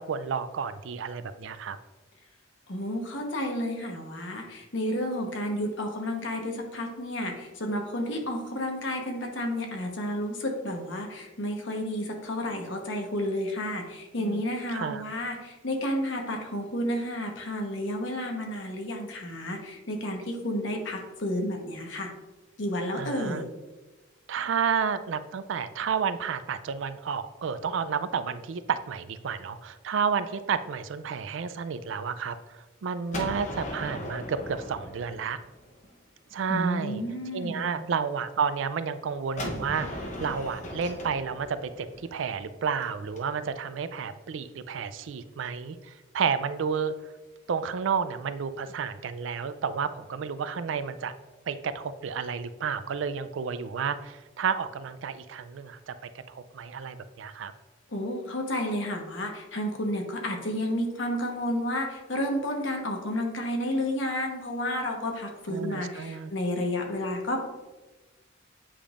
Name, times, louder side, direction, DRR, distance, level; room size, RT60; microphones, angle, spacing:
voice 1, 0.0-1.8 14.2-14.4 14.7-15.0 22.9-23.4 24.3-35.4 36.3-37.0 37.3-46.9 47.5-51.1 51.5-55.9 56.3-57.5 65.5-66.3, right 6 dB, 70° right, 13 dB, 0.4 m, -31 dB
voice 2, 2.7-22.1 22.6-23.5 36.5-37.8 57.9-67.5, left 1 dB, 65° left, 2 dB, 1.1 m, -31 dB
Gunshot gunfire, 33.1-35.9 39.4-43.2, left 1 dB, 40° left, 0.8 m, -38 dB
8.5 x 5.1 x 2.5 m, 1.2 s
head